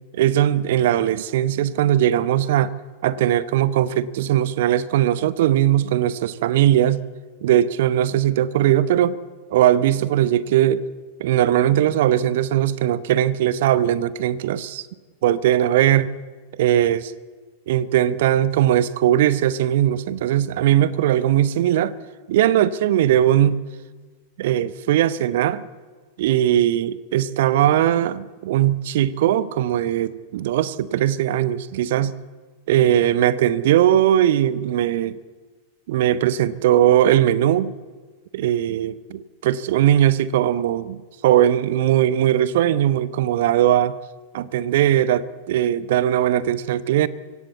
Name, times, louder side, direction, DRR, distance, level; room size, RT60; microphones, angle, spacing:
voice 1, 0.1-2.7 3.0-7.0 7.4-9.2 9.5-10.8 11.2-14.9 15.2-16.1 16.6-17.1 17.7-21.9 22.3-23.6 24.4-25.6 26.2-32.1 32.7-35.2 35.9-37.7 38.3-44.0 44.3-47.1, right 11 dB, 55° right, 18 dB, 0.9 m, -19 dB
24.0 x 16.5 x 8.2 m, 1.4 s
figure-of-eight pair, 90°, 0 cm